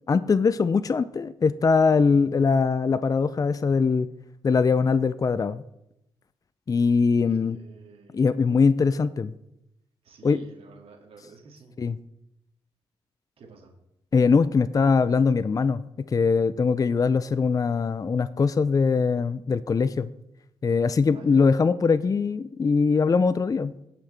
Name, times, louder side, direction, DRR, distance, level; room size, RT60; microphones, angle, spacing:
voice 1, 0.1-4.1 4.4-5.6 6.7-7.6 8.1-9.3 10.2-10.4 11.8-12.0 14.1-15.8 16.1-20.1 20.6-23.7, left 5 dB, 35° left, 14 dB, 0.5 m, -22 dB
voice 2, 7.3-8.2 10.0-11.8 13.4-13.7 21.1-21.4, right 5 dB, 70° right, 1 dB, 2.4 m, -49 dB
17.0 x 5.8 x 3.4 m, 0.83 s
supercardioid pair, 50°, 10 cm